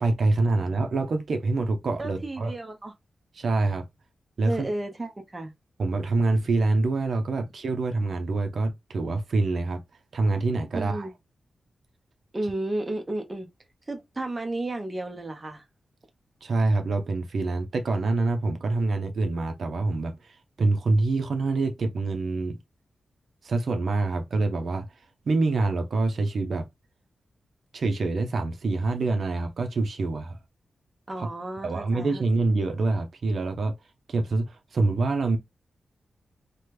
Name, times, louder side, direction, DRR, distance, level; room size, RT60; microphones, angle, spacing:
voice 1, 0.0-2.5 3.3-3.8 4.4-4.6 5.8-9.8 10.1-11.1 16.4-22.6 23.4-24.9 25.3-26.7 27.7-30.4 31.2-31.3 31.6-33.7 34.1-35.4, right 3 dB, 60° right, 0.5 m, -26 dB
voice 2, 2.0-2.9 4.4-5.5 10.7-11.1 12.3-13.5 13.9-15.6 31.1-32.2, right 2 dB, 20° right, 0.6 m, -32 dB
3.3 x 2.1 x 2.9 m
wide cardioid pair, 145°, 0 cm